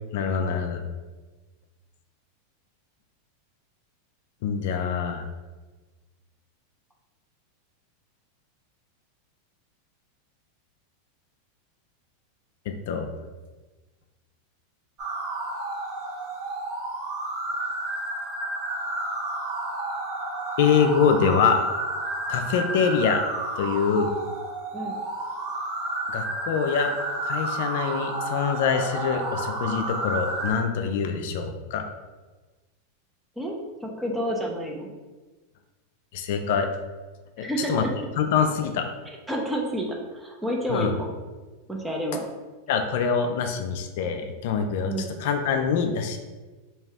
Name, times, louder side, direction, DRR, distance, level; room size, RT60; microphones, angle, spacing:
voice 1, 0.1-0.8 4.4-5.2 12.7-13.1 20.6-21.6 22.3-23.2 23.6-24.1 26.1-26.9 27.2-31.9 36.1-36.7 37.4-37.9 38.2-38.9 40.7-40.9 42.7-44.9 45.2-46.2, left 6 dB, 65° left, 5 dB, 0.4 m, -24 dB
sound 1, 15.0-30.5, right 2 dB, 45° right, 1.0 m, -31 dB
voice 2, 33.4-34.9 37.4-37.9 39.3-41.1 41.7-42.2 44.8-45.1, equal, 5° right, 0 dB, 0.7 m, -29 dB
3.4 x 2.8 x 3.3 m, 1.2 s
hypercardioid pair, 110°, 0 cm